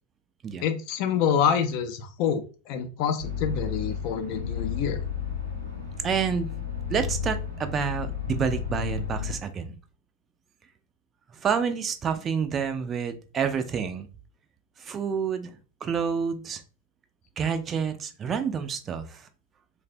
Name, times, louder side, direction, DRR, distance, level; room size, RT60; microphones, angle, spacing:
voice 1, 0.6-5.0, left 7 dB, 45° left, 8 dB, 0.4 m, -27 dB
sound 1, 3.2-9.3, left 7 dB, 85° left, 0.9 m, -32 dB
voice 2, 6.0-6.5 6.9-9.8 11.4-14.1 14.8-16.6 17.4-19.2, right 6 dB, 25° right, 9 dB, 0.4 m, -28 dB
3.2 x 2.0 x 2.5 m, 0.36 s
figure-of-eight pair, 90°, 0 cm